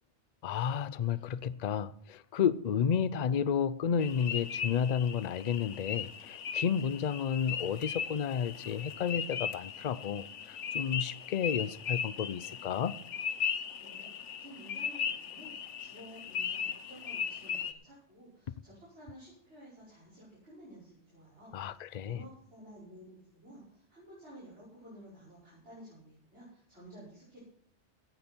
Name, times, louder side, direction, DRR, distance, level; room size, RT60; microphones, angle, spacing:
voice 1, 0.4-12.9 21.5-22.2, left 7 dB, 45° left, 0.6 m, -32 dB
sound 1, 4.0-17.7, left 7 dB, 85° left, 1.2 m, -38 dB
voice 2, 13.5-27.4, equal, 70° right, 6.0 m, -53 dB
17.5 x 9.1 x 4.5 m
omnidirectional pair, 1.2 m